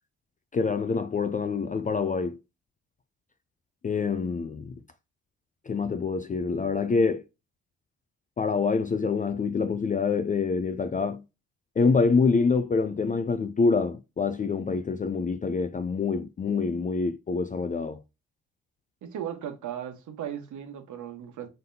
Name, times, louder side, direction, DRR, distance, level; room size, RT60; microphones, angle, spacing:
voice 1, 0.5-2.4 3.8-4.7 5.7-7.2 8.4-11.2 11.8-18.0, left 4 dB, 25° left, 0.4 m, -26 dB
voice 2, 19.0-21.5, right 9 dB, 60° right, 1.2 m, -36 dB
3.9 x 3.7 x 2.7 m
hypercardioid pair, 45°, 34 cm